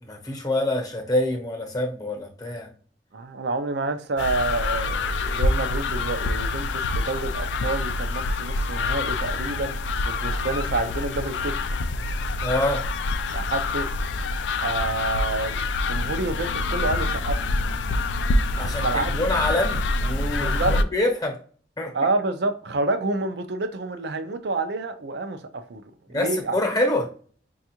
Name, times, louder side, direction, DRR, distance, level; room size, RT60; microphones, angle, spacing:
voice 1, 0.0-2.7 12.4-12.8 18.6-21.4 21.8-21.9 26.1-27.1, left 1 dB, 20° left, 0.9 m, -26 dB
voice 2, 3.1-11.5 13.3-13.9 14.6-17.5 18.6-19.2 20.4-20.8 21.9-25.8 26.1-26.6, right 3 dB, 65° right, 0.5 m, -28 dB
sound 1, 4.2-20.8, left 3 dB, 80° left, 0.4 m, -26 dB
5.2 x 2.4 x 2.8 m
head